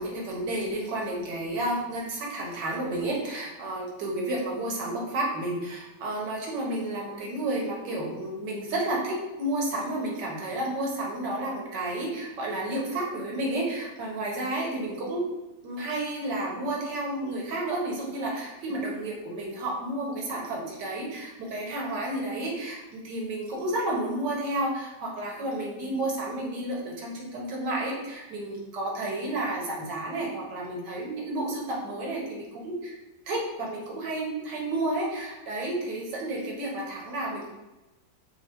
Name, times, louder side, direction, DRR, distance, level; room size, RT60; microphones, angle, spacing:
voice 1, 0.0-15.2 15.6-33.0 33.3-37.5, right 1 dB, 70° right, -3 dB, 1.6 m, -31 dB
4.4 x 2.2 x 4.3 m, 1.1 s
omnidirectional pair, 1.9 m